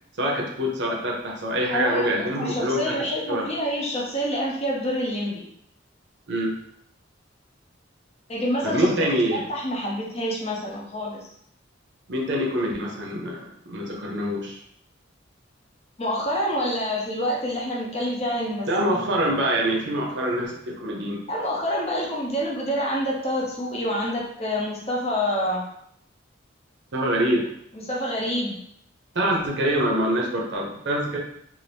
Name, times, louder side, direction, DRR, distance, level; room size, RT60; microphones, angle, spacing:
voice 1, 0.2-3.5 6.3-6.6 8.6-9.5 12.1-14.6 18.7-21.2 26.9-27.5 29.1-31.2, right 1 dB, 65° right, -1 dB, 0.7 m, -25 dB
voice 2, 1.7-5.5 8.3-8.9 9.3-11.2 16.0-19.0 21.3-25.6 27.7-28.6, equal, 35° left, -3 dB, 0.7 m, -27 dB
2.6 x 2.5 x 3.3 m, 0.71 s
head